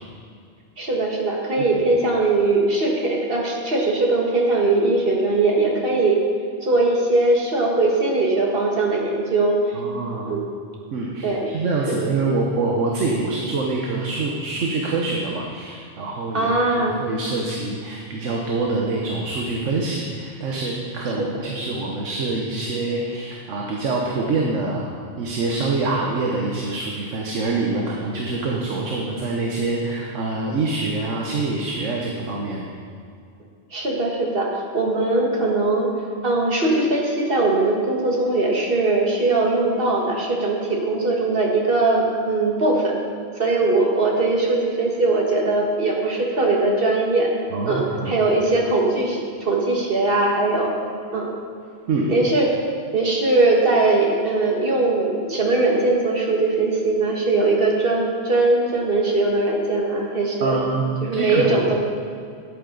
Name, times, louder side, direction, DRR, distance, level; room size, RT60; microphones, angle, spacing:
voice 1, 0.8-6.2 6.6-9.8 10.3-10.4 11.2-11.5 11.9-12.0 16.3-17.0 21.2-21.4 33.7-35.9 36.2-43.0 43.4-47.3 47.6-50.7 51.1-51.3 52.1-52.6 52.9-60.6 61.0-61.7, right 2 dB, 50° right, -1 dB, 1.6 m, -20 dB
voice 2, 9.7-10.4 10.9-24.9 25.2-32.7 47.5-48.1 51.9-52.1 60.4-60.8 61.1-61.5, right 3 dB, 90° right, -1 dB, 1.3 m, -25 dB
12.5 x 8.3 x 3.9 m, 2.3 s
omnidirectional pair, 1.2 m